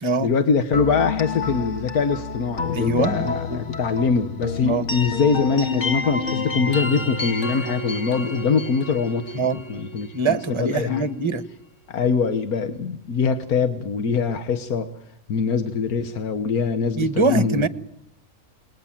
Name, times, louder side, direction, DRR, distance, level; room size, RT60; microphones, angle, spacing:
voice 1, 0.2-11.1 11.9-14.9 15.3-17.7, left 5 dB, 90° left, 10 dB, 1.8 m, -23 dB
sound 1, 0.7-10.5, left 3 dB, 55° left, 2.3 m, -29 dB
voice 2, 2.7-3.6 4.7-4.9 9.3-9.6 10.1-11.5 17.0-17.7, right 3 dB, 20° right, 14 dB, 1.2 m, -23 dB
28.0 x 21.0 x 7.6 m, 0.77 s
omnidirectional pair, 1.5 m